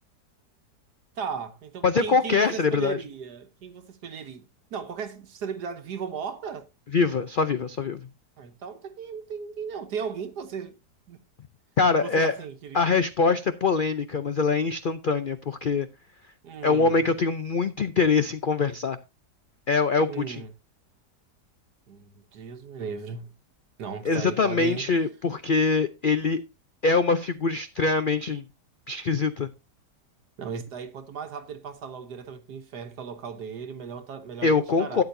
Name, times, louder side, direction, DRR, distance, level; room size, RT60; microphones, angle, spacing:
voice 1, 1.2-6.7 8.4-10.8 11.1-11.2 12.0-12.9 16.4-17.1 20.1-20.5 21.9-23.3 23.8-24.9 30.4-35.0, right 6 dB, 70° right, 1.5 m, -36 dB
voice 2, 1.8-3.0 6.9-8.0 11.8-12.3 12.7-15.9 16.6-19.0 19.7-20.4 24.0-26.4 26.8-28.4 28.9-29.5 34.4-35.0, left 4 dB, 80° left, 0.4 m, -23 dB
13.0 x 9.5 x 2.6 m
omnidirectional pair, 1.8 m